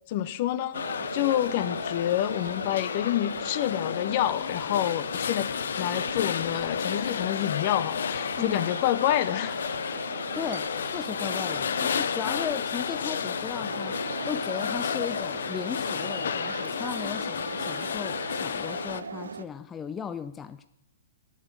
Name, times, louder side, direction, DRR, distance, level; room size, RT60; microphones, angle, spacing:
voice 1, 0.1-0.9 1.1-5.5 5.8-9.6, left 12 dB, 45° left, 13 dB, 0.8 m, -28 dB
sound 1, 0.7-19.0, left 7 dB, 70° left, 0.5 m, -32 dB
sound 2, 0.7-19.4, right 5 dB, 85° right, 0.7 m, -40 dB
voice 2, 10.0-14.0 14.3-20.6, left 7 dB, 15° left, 10 dB, 0.5 m, -36 dB
9.1 x 7.4 x 8.2 m, 0.79 s
hypercardioid pair, 130°, 0 cm